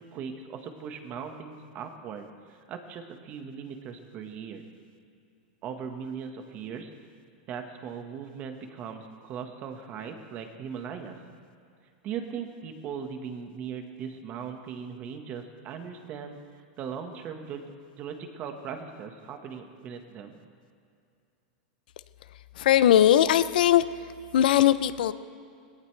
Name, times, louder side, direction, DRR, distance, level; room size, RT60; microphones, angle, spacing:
voice 1, 0.1-4.6 5.6-6.9 7.5-11.2 12.0-17.6 18.0-20.4, right 7 dB, 35° right, 5 dB, 1.5 m, -39 dB
voice 2, 22.6-23.8 24.3-25.1, left 11 dB, 80° left, 14 dB, 0.6 m, -19 dB
19.0 x 17.5 x 3.4 m, 2.4 s
supercardioid pair, 145°, 5 cm